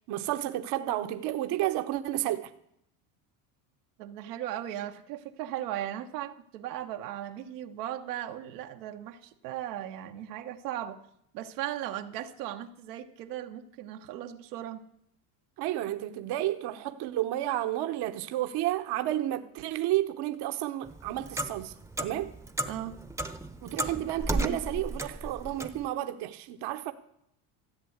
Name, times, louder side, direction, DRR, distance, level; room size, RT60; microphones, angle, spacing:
voice 1, 0.1-2.5 15.6-22.3 23.6-26.9, right 14 dB, 55° right, 1.0 m, -31 dB
voice 2, 4.0-11.0 11.3-14.8 22.6-23.0, right 12 dB, 85° right, 1.3 m, -37 dB
Clock, 20.8-25.8, right 1 dB, 5° right, 0.9 m, -34 dB
14.5 x 7.8 x 8.0 m
supercardioid pair, 100°, 47 cm